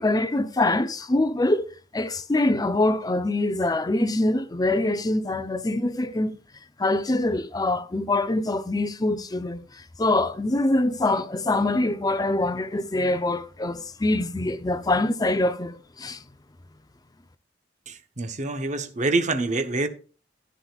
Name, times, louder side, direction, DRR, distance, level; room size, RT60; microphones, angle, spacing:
voice 1, 0.0-6.3 6.8-16.2, left 2 dB, 20° left, 0.6 m, -24 dB
voice 2, 17.9-19.9, right 3 dB, 40° right, 1.0 m, -26 dB
14.0 x 9.8 x 2.4 m
head